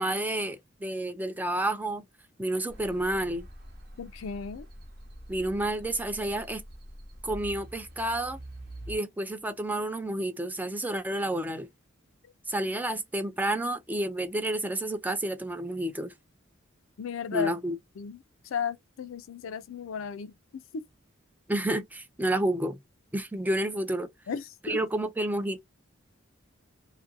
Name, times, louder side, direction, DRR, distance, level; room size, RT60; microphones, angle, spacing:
voice 1, 0.0-2.0 2.4-3.5 5.3-6.6 7.2-8.4 8.9-11.7 12.5-16.1 17.3-17.8 21.5-22.8 23.1-24.1 24.6-25.6, right 1 dB, 10° right, 0.3 m, -30 dB
sound 1, 2.7-9.0, equal, 55° right, 0.9 m, -45 dB
voice 2, 4.0-4.7 17.0-17.5 18.0-18.2 18.4-20.3 20.7-20.8 24.3-24.8, left 6 dB, 75° left, 0.4 m, -34 dB
2.6 x 2.5 x 2.6 m
head